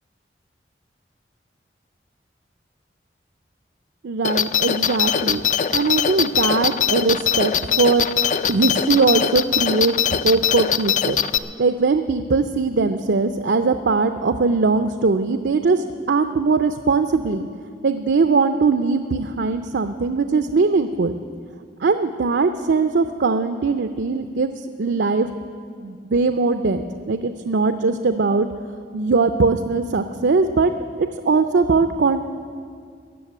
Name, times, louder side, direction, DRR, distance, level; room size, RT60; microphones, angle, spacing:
voice 1, 4.0-5.4 5.7-8.1 8.5-10.0 10.2-11.2 11.6-17.5 17.8-21.1 21.8-24.5 24.8-25.3 25.8-28.5 28.9-30.7 31.0-32.2, right 4 dB, 80° right, 9 dB, 0.5 m, -20 dB
sound 1, 4.2-11.4, left 8 dB, 45° left, 0.4 m, -21 dB
15.0 x 6.7 x 9.9 m, 2.2 s
head